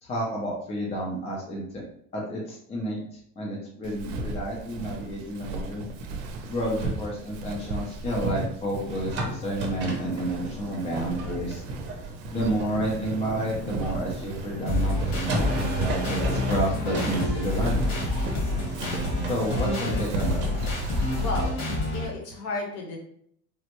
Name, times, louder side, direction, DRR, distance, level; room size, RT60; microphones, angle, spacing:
voice 1, 0.0-1.8 2.1-3.0 3.4-5.9 6.5-11.6 12.3-17.8 19.3-20.4, equal, 20° left, -3 dB, 0.4 m, -30 dB
Walk footsteps, 3.8-21.2, right 3 dB, 80° right, 0.6 m, -35 dB
sound 1, 9.0-21.5, right 1 dB, 35° right, 0.6 m, -37 dB
sound 2, 14.7-22.1, left 1 dB, 75° left, 1.4 m, -28 dB
voice 2, 21.2-21.6 21.9-23.0, left 2 dB, 50° left, 0 dB, 0.9 m, -32 dB
3.3 x 2.0 x 2.9 m, 0.67 s
cardioid pair, 165°, 33 cm